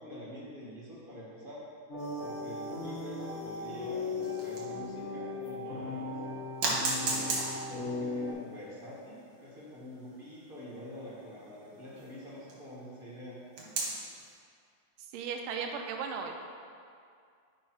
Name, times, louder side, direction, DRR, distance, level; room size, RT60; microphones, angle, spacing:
voice 1, 0.0-1.6 2.2-6.1 6.9-13.4, equal, 30° right, -7 dB, 1.0 m, -46 dB
sound 1, 1.9-8.3, left 3 dB, 45° left, 1.0 m, -37 dB
sound 2, 2.0-4.9 5.4-5.5 6.6-12.6 13.6-14.2, right 2 dB, 45° right, 1.6 m, -38 dB
voice 2, 15.0-16.5, right 6 dB, 85° right, 3 dB, 2.2 m, -36 dB
10.5 x 5.4 x 4.6 m, 2.3 s
omnidirectional pair, 3.8 m